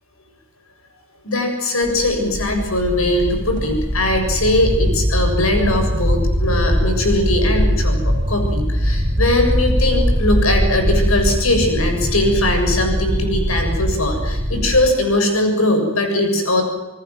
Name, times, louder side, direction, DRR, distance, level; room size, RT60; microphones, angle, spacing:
voice 1, 1.2-16.6, left 1 dB, 85° left, 4 dB, 7.3 m, -20 dB
sound 1, 1.8-14.9, equal, 35° right, 5.1 m, -21 dB
27.5 x 20.0 x 7.8 m, 1.1 s
head